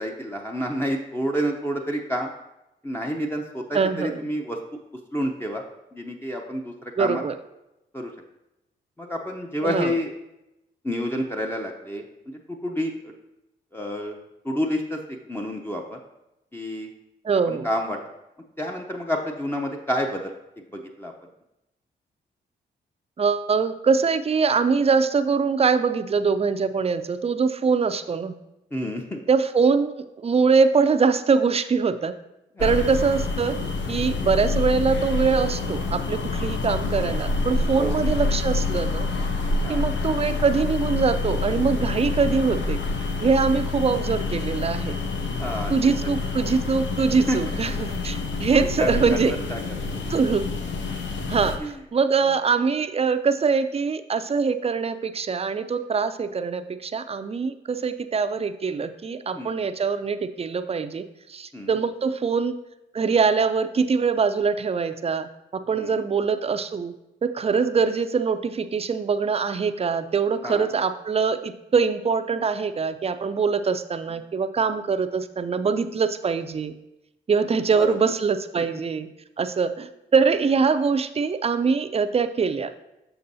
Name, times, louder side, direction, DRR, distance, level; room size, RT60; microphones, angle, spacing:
voice 1, 0.0-2.3 2.8-4.6 5.1-5.6 5.9-7.2 7.9-8.1 9.0-10.1 10.8-13.1 13.7-14.2 14.4-16.0 16.5-16.9 17.5-18.0 18.6-20.3 20.7-21.1 28.7-29.2 32.6-32.8 37.8-38.0 39.6-40.1 45.4-45.9 47.3-47.4 48.8-49.6 49.9-50.0 51.6-51.8 59.3-59.6 61.5-61.7 65.7-65.9 70.4-70.7 77.8-78.0, equal, 10° left, 0 dB, 0.7 m, -29 dB
voice 2, 3.7-4.3 7.0-7.4 9.6-9.9 17.2-17.7 23.2-28.4 29.3-32.1 32.6-33.6 33.9-39.1 39.7-42.8 43.2-45.0 45.7-49.3 50.1-50.5 51.3-61.0 61.3-62.5 62.9-66.9 67.2-76.7 77.3-79.1 79.4-82.7, right 5 dB, 30° right, 11 dB, 0.5 m, -23 dB
sound 1, 32.6-51.6, left 3 dB, 70° left, 0.9 m, -27 dB
6.8 x 5.9 x 2.7 m, 0.91 s
supercardioid pair, 50°, 20 cm